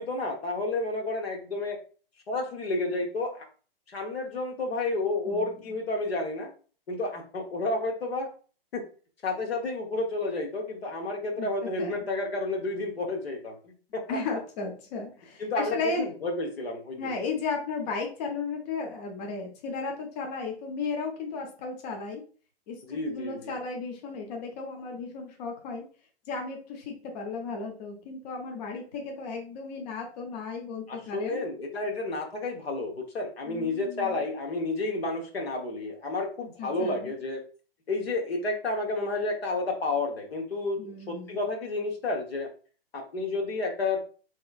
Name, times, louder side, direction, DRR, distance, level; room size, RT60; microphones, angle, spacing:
voice 1, 0.0-1.8 2.3-3.5 3.9-6.5 6.9-8.3 8.7-8.9 9.2-14.2 15.4-17.1 22.9-23.5 30.9-37.4 37.9-42.5 42.9-44.0, left 2 dB, 75° left, 1 dB, 1.1 m, -31 dB
voice 2, 5.2-5.6 11.4-11.5 11.8-12.1 14.1-16.1 17.0-22.2 22.7-25.9 26.3-31.5 33.4-34.2 36.6-37.1 40.8-41.4, left 4 dB, 45° left, 2 dB, 0.9 m, -35 dB
3.5 x 3.1 x 2.4 m, 0.39 s
hypercardioid pair, 120°, 30 cm